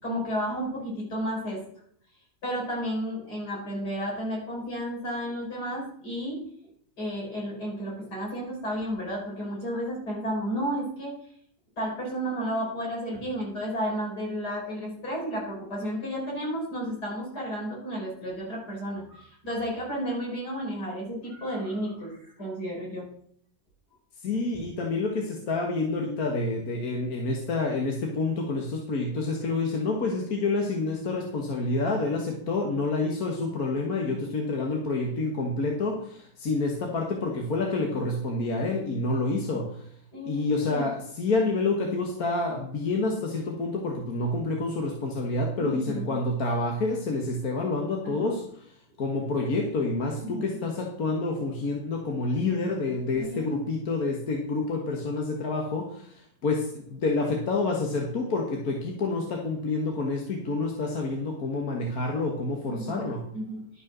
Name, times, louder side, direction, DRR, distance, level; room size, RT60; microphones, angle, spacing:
voice 1, 0.0-1.6 2.4-6.4 7.0-11.1 11.8-23.1 40.1-40.9 45.6-46.1 48.0-48.3 50.2-50.6 53.1-53.6 62.6-63.6, equal, 85° left, -3 dB, 5.1 m, -32 dB
voice 2, 24.2-39.9 40.2-63.3, left 3 dB, 70° left, 0 dB, 1.8 m, -28 dB
11.5 x 5.7 x 6.1 m, 0.64 s
omnidirectional pair, 1.7 m